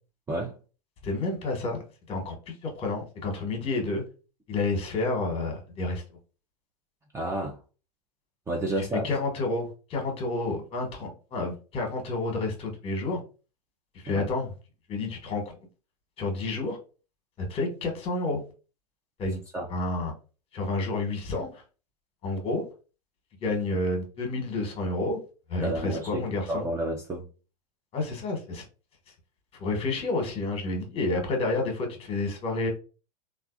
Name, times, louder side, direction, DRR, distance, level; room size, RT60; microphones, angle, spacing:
voice 1, 0.3-0.6 7.1-7.6 8.5-9.1 14.1-14.3 19.5-19.7 25.6-27.3, right 1 dB, 15° right, 0.6 m, -30 dB
voice 2, 1.0-1.8 2.1-4.0 4.5-6.0 8.8-13.2 13.9-14.5 14.9-15.6 16.2-16.8 17.5-18.4 19.2-19.4 19.7-20.1 20.5-21.6 22.2-22.6 23.4-25.2 25.5-26.7 27.9-28.6 29.5-32.7, left 2 dB, 30° left, 1.3 m, -30 dB
3.3 x 2.5 x 2.5 m
hypercardioid pair, 100°, 20 cm